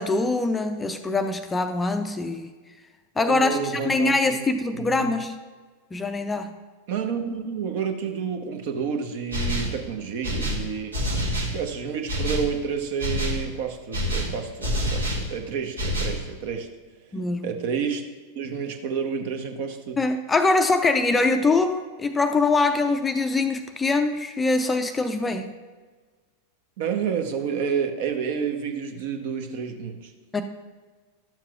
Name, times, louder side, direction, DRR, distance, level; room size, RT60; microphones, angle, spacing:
voice 1, 0.0-2.5 3.2-5.3 5.9-6.5 17.1-17.5 20.0-25.5 30.3-30.4, left 3 dB, 15° left, 8 dB, 0.5 m, -23 dB
voice 2, 3.2-4.4 4.7-5.0 6.9-10.9 11.5-16.7 17.4-18.0 18.3-20.0 26.8-30.1, right 6 dB, 50° right, 5 dB, 0.9 m, -29 dB
sound 1, 9.3-9.8 10.2-11.6 12.1-12.5 13.0-13.5 13.9-15.3 15.8-16.2, equal, 75° right, 1.3 m, -27 dB
12.0 x 7.3 x 2.4 m, 1.4 s
figure-of-eight pair, 90°, 0 cm